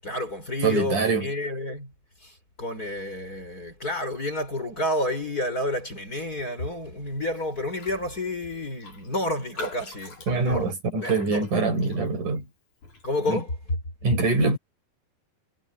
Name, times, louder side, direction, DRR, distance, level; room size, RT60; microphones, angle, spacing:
voice 1, 0.0-1.9 2.2-11.5 13.0-13.8, left 1 dB, 25° left, 6.3 m, -30 dB
voice 2, 0.6-1.2 10.3-12.5 13.3-13.4 14.0-14.6, right 3 dB, 60° right, 7.6 m, -24 dB
Raindrop, 7.7-8.0 8.3-8.4 8.8-12.4 12.8-13.1, equal, 55° left, 7.0 m, -41 dB
omnidirectional pair, 4.2 m